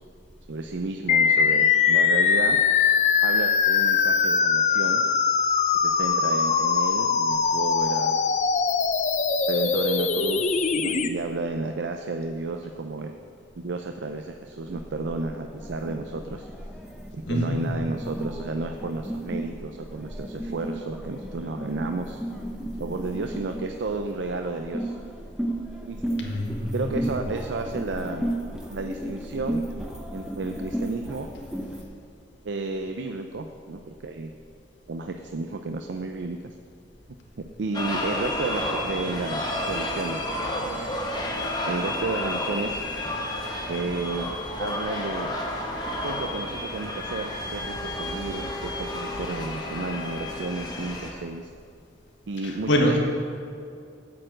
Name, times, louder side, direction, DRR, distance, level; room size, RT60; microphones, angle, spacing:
voice 1, 0.5-2.6 3.2-5.0 5.7-8.1 9.5-13.1 13.6-16.5 17.1-22.2 22.8-25.0 25.8-26.2 26.7-28.3 28.7-29.6 30.1-31.3 32.5-34.3 34.9-36.5 37.6-40.2 40.6-41.2 41.7-42.8 43.7-44.3 44.6-45.3 46.0-51.5 52.3-52.9, right 3 dB, 85° right, 5 dB, 0.5 m, -32 dB
sound 1, 1.1-11.1, left 6 dB, 40° left, 0.5 m, -22 dB
sound 2, 14.7-31.8, right 1 dB, 5° right, 0.8 m, -34 dB
voice 2, 17.3-17.6 26.2-27.0 52.4-53.0, equal, 90° left, 1 dB, 1.6 m, -25 dB
sound 3, 37.7-51.1, left 1 dB, 25° left, 1.1 m, -31 dB
8.3 x 6.6 x 7.8 m, 2.5 s
head